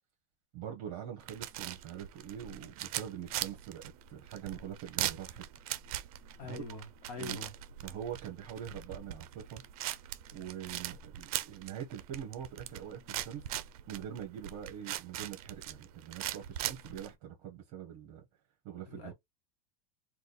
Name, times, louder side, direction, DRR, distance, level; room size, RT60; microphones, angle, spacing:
voice 1, 0.5-5.4 6.4-6.8 7.2-7.4 7.8-9.6 10.3-13.5 13.9-18.2 18.6-19.1, right 9 dB, 50° right, 1.2 m, -43 dB
sound 1, 1.2-17.1, right 13 dB, 65° right, 0.6 m, -41 dB
voice 2, 6.4-7.5 18.9-19.1, left 3 dB, 45° left, 1.2 m, -43 dB
3.6 x 2.4 x 4.1 m
supercardioid pair, 160°, 19 cm